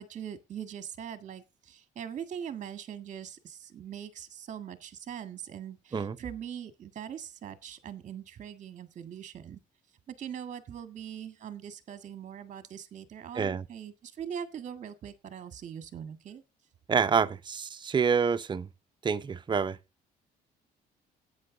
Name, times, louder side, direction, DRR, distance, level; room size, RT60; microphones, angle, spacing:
voice 1, 0.0-9.6 10.1-16.4, right 8 dB, 45° right, 1.7 m, -41 dB
voice 2, 16.9-18.7 19.0-19.8, right 6 dB, 25° right, 0.7 m, -27 dB
11.5 x 9.0 x 3.8 m
cardioid pair, 110°, 17 cm